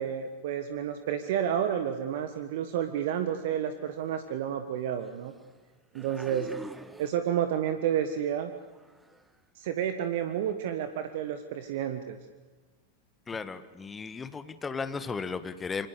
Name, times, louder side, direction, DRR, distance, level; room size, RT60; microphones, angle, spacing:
voice 1, 0.0-5.3 5.9-6.5 7.0-8.5 9.5-12.2, right 9 dB, 55° right, 8 dB, 1.5 m, -30 dB
sound 1, 4.1-4.2 5.0-5.6 5.9-7.6 7.9-8.2 8.6-9.3 10.0-10.1, right 1 dB, 5° right, 1.6 m, -47 dB
voice 2, 13.3-15.9, left 5 dB, 15° left, 12 dB, 1.5 m, -35 dB
27.5 x 24.5 x 6.9 m, 1.3 s
figure-of-eight pair, 90°, 0 cm